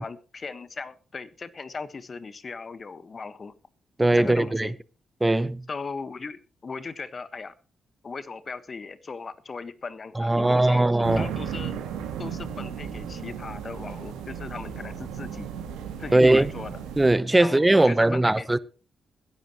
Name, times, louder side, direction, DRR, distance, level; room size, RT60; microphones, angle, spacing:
voice 1, 0.0-3.5 4.1-4.7 5.7-7.5 8.0-11.8 12.2-15.5 16.0-16.7 17.4-18.6, left 4 dB, 45° left, 1.4 m, -38 dB
voice 2, 4.0-4.7 5.2-5.7 10.2-11.3 16.1-16.5 17.0-18.6, right 2 dB, 20° right, 0.9 m, -20 dB
sound 1, 11.0-17.1, right 8 dB, 85° right, 2.3 m, -35 dB
21.5 x 10.5 x 3.1 m
hypercardioid pair, 45°, 0 cm